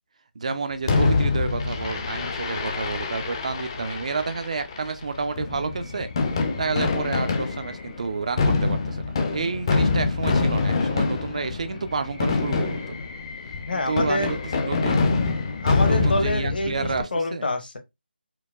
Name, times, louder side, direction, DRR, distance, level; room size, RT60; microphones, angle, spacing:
voice 1, 0.4-6.1 6.6-12.9 13.7-15.1 15.8-17.5, right 4 dB, 40° right, 0.4 m, -30 dB
Fireworks, 0.9-17.0, left 4 dB, 25° left, 0.5 m, -25 dB
voice 2, 13.7-14.4 15.6-17.8, left 2 dB, 55° left, 0.9 m, -27 dB
4.5 x 2.1 x 2.3 m
figure-of-eight pair, 160°, 6 cm